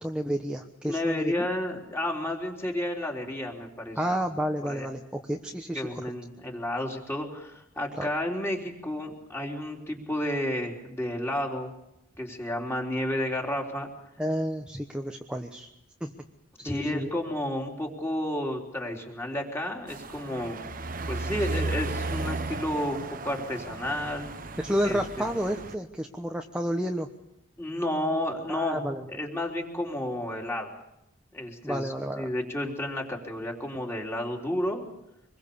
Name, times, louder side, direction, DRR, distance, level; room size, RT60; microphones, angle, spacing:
voice 1, 0.0-1.5 4.0-5.8 8.0-8.1 14.2-15.7 16.0-16.1 16.6-17.1 24.6-27.1 28.5-29.0 31.6-32.3, equal, 5° right, 3 dB, 1.1 m, -30 dB
voice 2, 0.8-4.0 4.6-4.9 5.7-11.7 12.2-13.9 16.6-20.6 21.1-24.3 24.8-25.2 27.6-28.8 29.1-30.7 31.3-34.8, left 1 dB, 10° left, 1 dB, 3.7 m, -31 dB
sound 1, 19.9-25.8, right 2 dB, 40° right, 1.1 m, -34 dB
26.0 x 21.5 x 7.0 m, 0.85 s
head